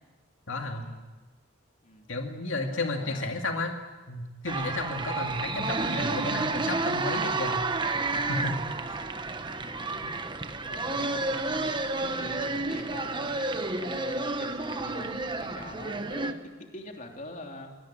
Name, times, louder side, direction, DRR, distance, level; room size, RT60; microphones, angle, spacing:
voice 1, 0.5-0.9 2.1-3.7 4.1-7.8 8.1-8.6 8.9-9.0, left 2 dB, 80° left, 3 dB, 2.3 m, -33 dB
voice 2, 2.6-3.4 9.5-9.9 10.6-11.6 12.0-17.7, left 1 dB, 40° left, 2 dB, 3.1 m, -44 dB
sound 1, 4.5-16.3, right 3 dB, 25° right, 1.2 m, -30 dB
24.0 x 19.0 x 10.0 m, 1.3 s
head